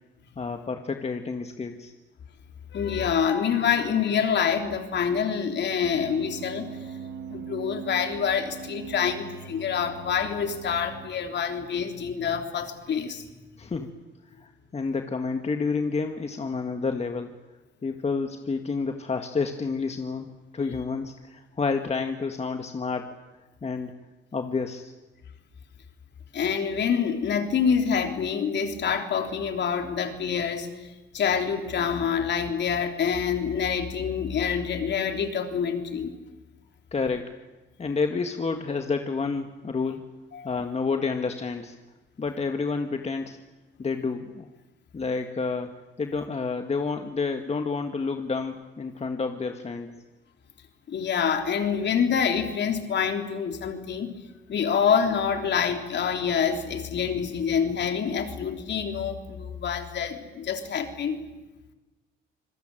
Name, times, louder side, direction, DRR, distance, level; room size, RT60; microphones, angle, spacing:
voice 1, 0.4-1.9 13.6-13.9 14.4-17.4 17.8-23.2 23.6-23.9 24.3-24.9 36.9-37.3 37.8-40.0 40.4-41.8 42.2-43.4 43.8-44.5 44.9-45.7 46.0-50.0, left 4 dB, 30° left, 6 dB, 1.9 m, -29 dB
voice 2, 2.7-6.7 7.3-13.3 26.3-30.7 31.1-36.2 40.3-40.5 50.9-54.1 54.5-61.2, left 7 dB, 60° left, 6 dB, 3.5 m, -26 dB
sound 1, 5.8-11.1, right 6 dB, 80° right, 2.8 m, -40 dB
26.0 x 21.5 x 9.1 m, 1.1 s
cardioid pair, 90°, 20 cm